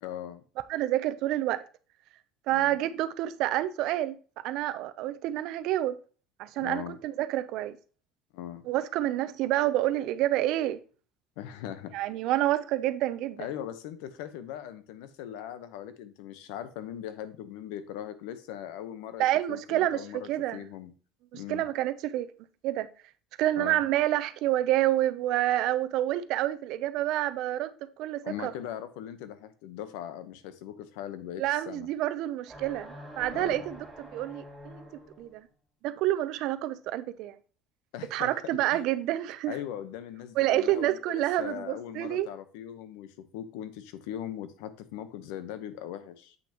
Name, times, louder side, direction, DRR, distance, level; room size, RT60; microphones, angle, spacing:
voice 1, 0.0-0.4 2.5-2.8 6.6-7.0 8.3-8.6 11.4-12.0 13.4-20.9 21.3-21.7 23.6-23.8 28.2-31.9 33.3-33.7 37.9-38.3 38.7-38.8 39.5-46.4, left 10 dB, 85° left, 0.9 m, -40 dB
voice 2, 0.7-1.6 2.5-4.2 4.4-6.0 6.4-7.8 8.7-10.8 11.9-13.5 19.2-20.6 21.3-22.3 22.6-22.9 23.4-28.5 31.4-34.9 35.2-35.5 35.8-37.4 38.1-39.6 40.4-42.3, right 14 dB, 60° right, 0.5 m, -28 dB
sound 1, 32.5-35.3, equal, 15° right, 3.0 m, -46 dB
7.9 x 6.0 x 2.9 m
cardioid pair, 145°, 0 cm